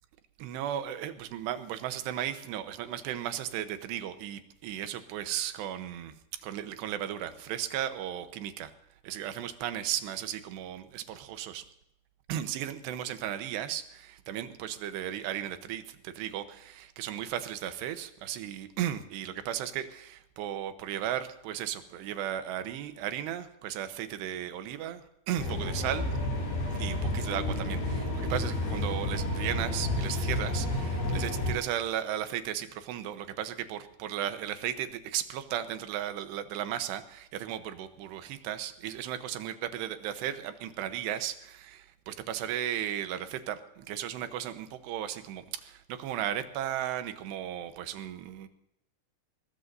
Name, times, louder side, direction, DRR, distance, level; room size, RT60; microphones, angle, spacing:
voice 1, 0.4-8.7 9.0-11.7 12.3-26.1 26.7-48.5, right 11 dB, 90° right, 10 dB, 3.2 m, -35 dB
sound 1, 25.4-31.5, left 1 dB, 80° left, 6.5 m, -31 dB
21.5 x 20.0 x 2.7 m, 0.79 s
omnidirectional pair, 4.8 m